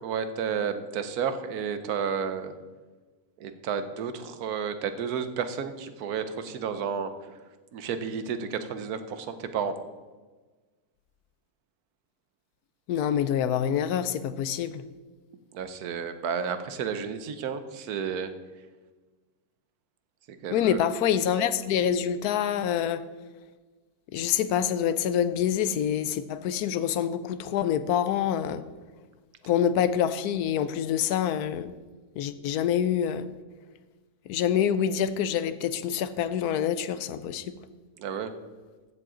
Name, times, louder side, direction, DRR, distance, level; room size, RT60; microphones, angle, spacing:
voice 1, 0.0-2.5 3.4-7.1 7.7-9.8 15.5-18.3 20.3-20.8 38.0-38.3, right 6 dB, 80° right, 10 dB, 1.3 m, -31 dB
voice 2, 12.9-14.8 20.5-23.0 24.1-28.6 29.4-31.7 32.2-33.3 34.3-37.5, left 9 dB, 90° left, 13 dB, 1.1 m, -26 dB
14.0 x 7.6 x 3.8 m, 1.3 s
omnidirectional pair, 1.6 m